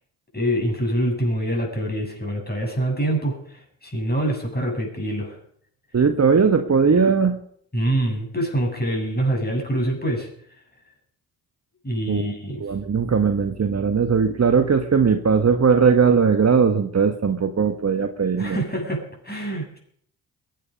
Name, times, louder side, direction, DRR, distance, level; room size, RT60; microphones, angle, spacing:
voice 1, 0.3-5.4 7.7-10.3 11.8-12.6 18.4-19.8, right 1 dB, 20° left, 1 dB, 7.5 m, -25 dB
voice 2, 5.9-7.4 12.1-12.2 12.6-18.6, right 5 dB, 35° right, 7 dB, 1.4 m, -19 dB
22.5 x 9.7 x 5.3 m, 0.64 s
hypercardioid pair, 45°, 47 cm